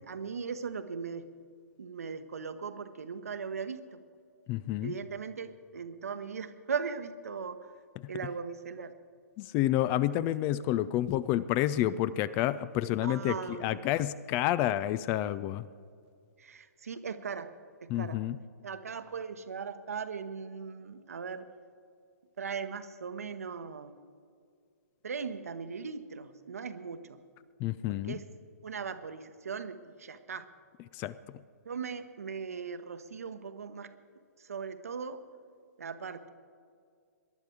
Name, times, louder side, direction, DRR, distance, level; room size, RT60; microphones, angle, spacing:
voice 1, 0.1-1.2 1.8-4.0 4.8-7.7 8.1-8.9 13.0-13.8 16.4-17.5 17.8-18.2 18.6-21.5 22.4-23.9 25.0-27.2 27.9-28.2 28.6-30.5 31.6-33.9 34.4-35.2 35.8-36.3, right 6 dB, 60° right, 10 dB, 1.0 m, -39 dB
voice 2, 4.5-5.0 8.0-8.1 9.4-15.6 17.9-18.4 27.6-28.2 30.9-31.1, left 13 dB, 20° left, 17 dB, 0.3 m, -29 dB
19.0 x 11.5 x 4.8 m, 2.2 s
figure-of-eight pair, 120°, 9 cm